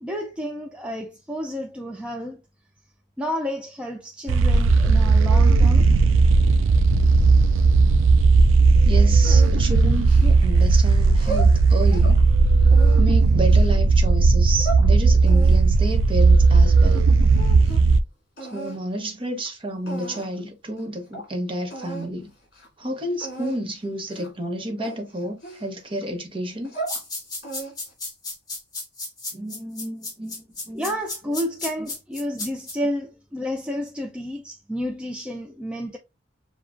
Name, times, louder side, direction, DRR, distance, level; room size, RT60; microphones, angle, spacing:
voice 1, 0.0-2.4 3.2-5.9 30.7-36.0, equal, 5° right, 0.4 m, -30 dB
sound 1, 4.3-18.0, right 3 dB, 80° right, 0.3 m, -16 dB
voice 2, 8.8-12.2 13.0-17.1 18.4-22.3 22.8-26.7 29.3-30.9, right 1 dB, 30° right, 1.0 m, -30 dB
sound 2, 9.3-10.6 11.1-12.2 12.7-13.7 14.3-14.9 15.3-17.0 17.3-17.9 18.4-18.8 19.5-19.6 19.9-20.4 20.8-20.9 21.1-21.3 21.7-22.1 22.4-22.7 23.2-23.6 24.1-24.4 24.8-26.0 26.5-27.0 27.4-27.9, right 3 dB, 55° left, 2.7 m, -35 dB
sound 3, 26.9-32.7, left 3 dB, 20° left, 1.6 m, -33 dB
7.0 x 2.3 x 2.5 m
head